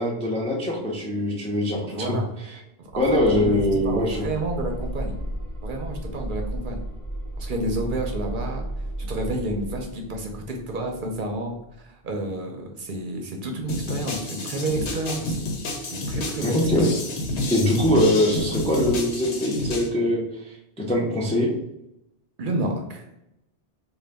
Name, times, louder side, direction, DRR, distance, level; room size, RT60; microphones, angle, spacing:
voice 1, 0.0-2.6 3.0-4.3 16.4-16.9 17.5-21.5, left 1 dB, 10° left, -2 dB, 0.3 m, -23 dB
voice 2, 1.8-2.3 2.8-5.2 5.6-6.8 7.4-8.7 9.0-15.4 15.9-17.1 22.4-23.1, right 1 dB, 55° right, 2 dB, 0.7 m, -30 dB
sound 1, 2.9-11.8, right 1 dB, 70° left, 1.3 m, -34 dB
sound 2, 13.7-19.9, left 1 dB, 85° left, 1.0 m, -29 dB
3.9 x 2.2 x 3.3 m, 0.85 s
omnidirectional pair, 1.1 m